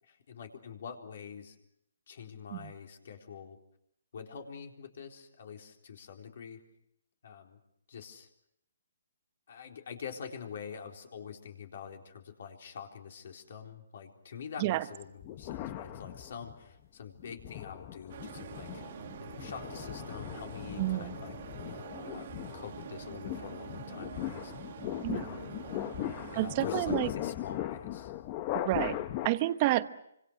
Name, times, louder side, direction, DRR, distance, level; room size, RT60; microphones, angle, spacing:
voice 1, 0.0-1.6 2.1-3.6 4.1-6.6 7.2-7.6 7.9-8.3 9.5-18.9 19.2-24.5 25.1-25.5 26.3-28.1, left 7 dB, 55° left, 3 dB, 4.1 m, -46 dB
sound 1, 15.2-16.6 17.2-29.3, left 13 dB, 30° left, 1.2 m, -39 dB
sound 2, 18.1-27.0, right 9 dB, 50° right, 1.3 m, -46 dB
voice 2, 20.8-21.1 25.0-25.3 26.3-27.1 28.5-29.0 29.2-29.9, right 17 dB, 30° right, 13 dB, 1.0 m, -29 dB
27.0 x 26.0 x 6.5 m, 0.77 s
hypercardioid pair, 155°, 0 cm